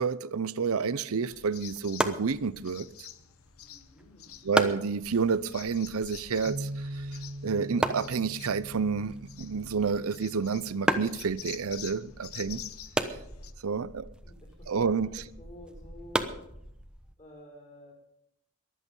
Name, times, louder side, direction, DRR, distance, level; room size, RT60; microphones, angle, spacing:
voice 1, 0.0-2.9 4.4-7.1 7.4-12.7 13.6-14.1 14.7-15.2, right 5 dB, 80° right, 0.6 m, -29 dB
sound 1, 1.3-13.5, left 10 dB, 75° left, 1.0 m, -48 dB
sound 2, 1.3-17.1, right 1 dB, 5° right, 1.0 m, -36 dB
voice 2, 3.6-4.4 13.4-13.8 14.2-16.4 17.2-17.9, left 1 dB, 35° left, 5.9 m, -51 dB
Bass guitar, 6.5-12.7, right 1 dB, 65° right, 1.7 m, -42 dB
22.5 x 8.5 x 5.5 m
head